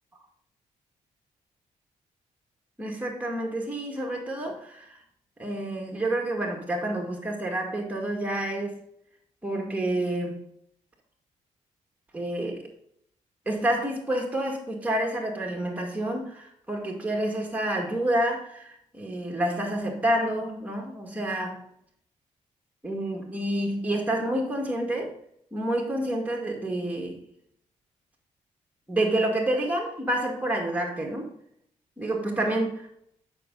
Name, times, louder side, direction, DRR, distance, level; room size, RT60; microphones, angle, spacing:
voice 1, 2.8-5.0 5.4-8.8 9.4-10.4 12.1-12.7 13.5-21.6 22.8-25.1 25.5-27.2 28.9-31.3 32.0-32.9, right 1 dB, 10° right, 0 dB, 2.0 m, -28 dB
9.9 x 5.2 x 3.9 m, 0.71 s
supercardioid pair, 55°, 15 cm